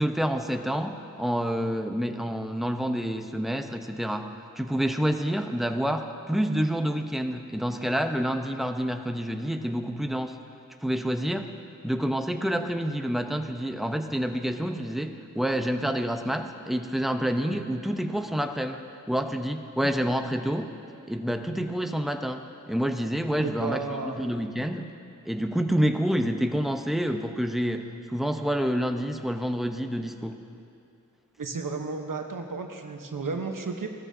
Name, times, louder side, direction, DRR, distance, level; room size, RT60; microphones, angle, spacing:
voice 1, 0.0-10.4 10.8-11.5 11.8-20.7 21.1-24.9 25.2-30.4, equal, ahead, 6 dB, 0.8 m, -28 dB
voice 2, 23.4-24.2 31.4-33.9, right 4 dB, 75° right, 4 dB, 1.1 m, -33 dB
17.0 x 13.5 x 2.8 m, 2.7 s
cardioid pair, 40°, 33 cm